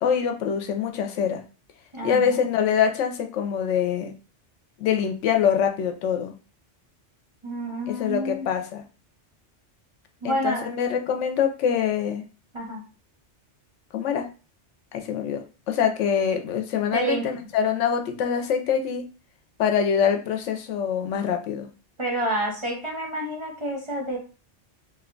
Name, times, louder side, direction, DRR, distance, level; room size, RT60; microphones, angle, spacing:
voice 1, 0.0-1.4 2.0-4.1 4.8-6.4 7.9-8.8 10.2-12.3 13.9-14.3 14.9-19.0 19.6-21.7, left 7 dB, 85° left, 5 dB, 0.9 m, -24 dB
voice 2, 1.9-2.5 7.4-8.5 10.2-10.7 12.5-12.8 16.9-17.2 22.0-24.2, right 1 dB, 35° right, -2 dB, 0.6 m, -28 dB
2.7 x 2.2 x 3.7 m, 0.35 s
omnidirectional pair, 1.2 m